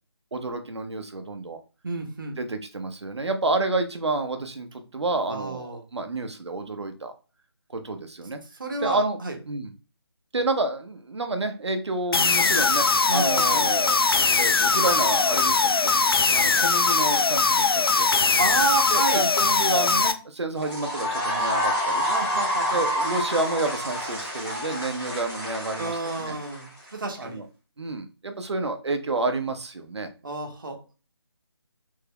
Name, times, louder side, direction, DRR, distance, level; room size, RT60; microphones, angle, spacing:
voice 1, 0.3-1.6 2.4-7.1 7.7-8.4 8.8-9.2 9.4-9.7 10.3-14.0 14.4-15.9 16.3-18.1 18.9-22.0 22.7-26.4 27.2-27.4 27.8-30.1, right 2 dB, 80° right, 7 dB, 0.8 m, -29 dB
voice 2, 1.8-2.4 5.3-5.8 8.6-9.4 13.1-13.7 18.4-19.2 22.1-22.8 25.8-27.4 30.2-30.8, right 3 dB, 50° right, 3 dB, 1.0 m, -30 dB
sound 1, 12.1-20.1, left 4 dB, 60° left, 0.4 m, -21 dB
sound 2, 20.6-26.9, equal, 5° left, 0.7 m, -28 dB
3.5 x 3.4 x 2.2 m, 0.34 s
figure-of-eight pair, 175°, 14 cm